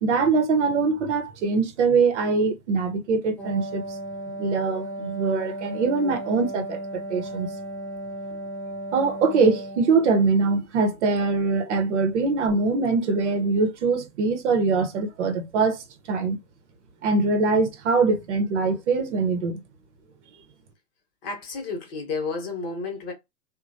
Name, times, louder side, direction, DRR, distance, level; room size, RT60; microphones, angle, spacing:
voice 1, 0.0-4.0 4.4-7.5 8.9-16.4 17.0-19.6, right 4 dB, 45° right, 0.9 m, -23 dB
Wind instrument woodwind instrument, 3.4-10.1, right 1 dB, 10° right, 0.4 m, -35 dB
voice 2, 21.2-23.1, left 4 dB, 35° left, 1.1 m, -31 dB
3.0 x 2.3 x 2.6 m
figure-of-eight pair, 125°, 49 cm